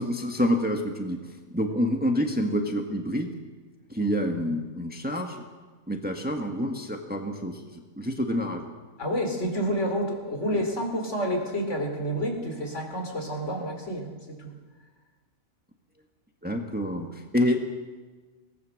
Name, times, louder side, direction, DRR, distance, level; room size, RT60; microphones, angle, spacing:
voice 1, 0.0-3.3 3.9-5.4 5.9-8.7 10.5-10.6 16.4-17.7, equal, 5° right, 3 dB, 1.4 m, -28 dB
voice 2, 9.0-14.5, equal, 55° left, 3 dB, 3.4 m, -29 dB
22.5 x 18.0 x 6.5 m, 1.3 s
omnidirectional pair, 1.5 m